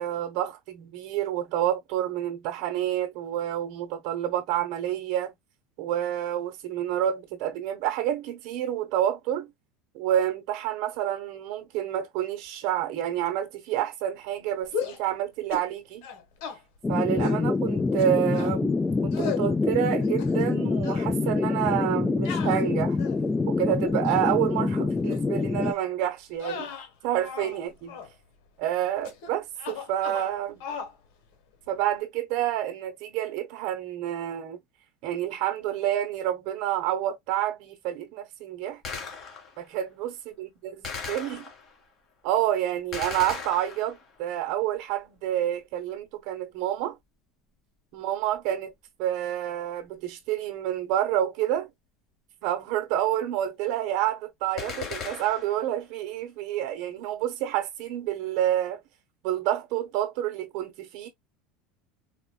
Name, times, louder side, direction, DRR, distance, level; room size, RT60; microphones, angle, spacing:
voice 1, 0.0-5.3 5.8-9.5 9.9-16.0 16.9-18.7 19.0-23.0 23.5-26.7 27.0-28.0 28.6-30.6 31.7-34.6 35.0-38.8 39.6-41.5 42.2-47.0 47.9-48.7 49.0-51.7 52.4-58.8 59.2-61.1, right 12 dB, 60° right, 1.0 m, -28 dB
sound 1, 14.7-15.1 15.5-15.7 16.0-16.6 17.2-17.4 18.0-18.6 19.1-19.5 20.0-20.6 20.8-21.1 22.3-23.3 23.9-24.3 25.1-25.2 25.6-25.8 26.3-27.6 27.9-28.1 29.0-29.3 29.6-30.3 30.6-30.9, left 6 dB, 70° left, 1.3 m, -36 dB
sound 2, 16.8-25.7, left 4 dB, 15° left, 0.3 m, -26 dB
Gunshot gunfire, 38.8-39.7 40.8-41.8 42.9-44.2 54.6-55.6, left 5 dB, 40° left, 1.9 m, -37 dB
4.4 x 2.4 x 2.3 m
supercardioid pair, 135°, 0 cm